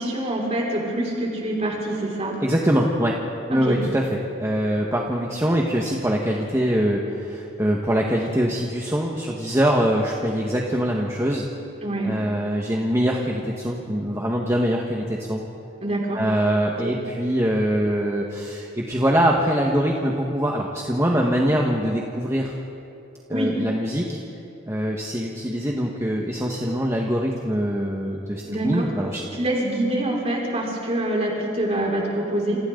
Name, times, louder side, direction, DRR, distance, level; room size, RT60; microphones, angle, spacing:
voice 1, 0.0-2.3 3.5-3.8 11.8-12.1 15.8-16.2 16.8-16.9 23.3-23.6 28.4-28.9 29.1-32.6, right 1 dB, 35° right, -3 dB, 5.6 m, -25 dB
voice 2, 2.4-3.2 3.5-11.4 12.0-15.4 16.1-22.5 23.3-24.2 24.7-29.2, equal, 15° right, -1 dB, 1.6 m, -23 dB
28.5 x 27.5 x 4.0 m, 2.8 s
head